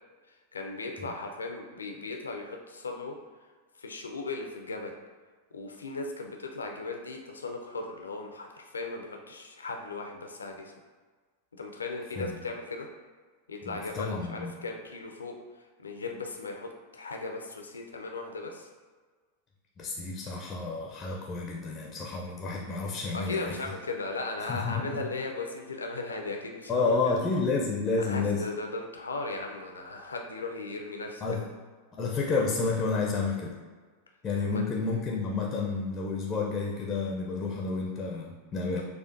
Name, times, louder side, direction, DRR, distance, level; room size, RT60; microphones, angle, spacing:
voice 1, 0.5-3.2 3.8-4.9 5.5-10.7 11.6-12.9 13.5-15.4 15.8-18.7 23.1-27.1 28.0-31.2 34.5-34.6, left 3 dB, 75° left, 2 dB, 0.5 m, -37 dB
voice 2, 13.6-14.5 19.8-23.5 24.4-25.0 26.7-28.4 31.2-31.4 31.9-33.5 34.2-38.8, left 4 dB, 20° left, -1 dB, 0.6 m, -30 dB
6.5 x 2.4 x 2.5 m, 1.4 s
figure-of-eight pair, 90°, 0 cm